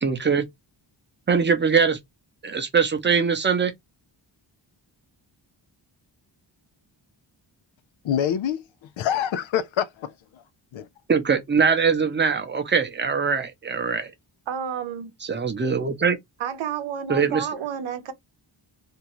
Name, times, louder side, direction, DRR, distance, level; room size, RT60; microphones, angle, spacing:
voice 1, 0.0-0.5 1.3-2.0 2.4-3.7 11.1-14.1 15.2-16.2 17.1-17.5, right 5 dB, 25° right, 0.5 m, -22 dB
voice 2, 8.0-10.4 10.7-10.9, left 9 dB, 85° left, 0.6 m, -26 dB
voice 3, 14.5-15.1 16.4-18.1, right 8 dB, 85° right, 0.7 m, -30 dB
2.6 x 2.2 x 2.9 m
wide cardioid pair, 155°, 46 cm